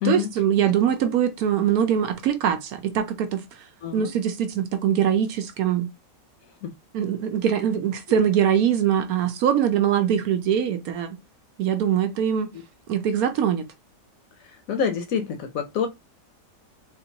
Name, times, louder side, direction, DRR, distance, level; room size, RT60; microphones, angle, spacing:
voice 1, 0.0-3.6 3.9-5.9 6.9-11.2 11.6-12.5 12.9-13.6, right 9 dB, 70° right, 0.9 m, -22 dB
voice 2, 14.7-15.9, left 8 dB, 70° left, 0.9 m, -26 dB
3.7 x 2.4 x 2.7 m
omnidirectional pair, 1.8 m